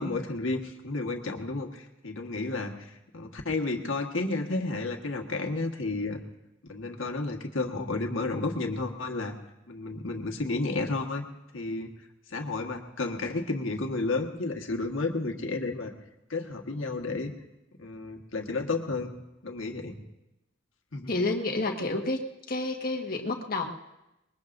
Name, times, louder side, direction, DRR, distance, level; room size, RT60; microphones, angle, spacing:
voice 1, 0.0-6.2 6.7-9.3 9.7-11.2 11.5-11.9 12.3-15.9 16.3-17.3 17.8-19.1 19.4-20.0 20.9-21.1, left 3 dB, 80° left, 3 dB, 1.6 m, -32 dB
voice 2, 21.1-23.7, left 2 dB, 45° left, 2 dB, 1.6 m, -30 dB
23.5 x 21.5 x 2.6 m, 0.93 s
head